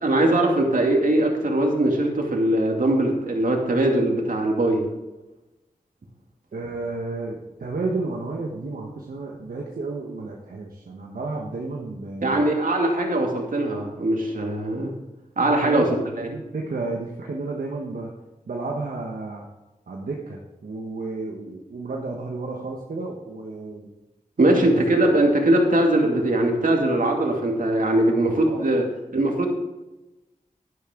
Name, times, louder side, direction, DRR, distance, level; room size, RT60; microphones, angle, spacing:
voice 1, 0.0-4.8 12.2-14.9 15.4-15.8 16.2-16.3 24.4-28.8 29.1-29.5, right 1 dB, 70° right, 1 dB, 2.4 m, -21 dB
voice 2, 6.5-12.4 15.4-18.1 18.5-19.5 19.9-23.9 24.5-24.8 25.1-25.2 28.5-28.8, right 3 dB, 85° right, -1 dB, 1.2 m, -32 dB
11.0 x 10.5 x 3.8 m, 1.0 s
cardioid pair, 50°, 14 cm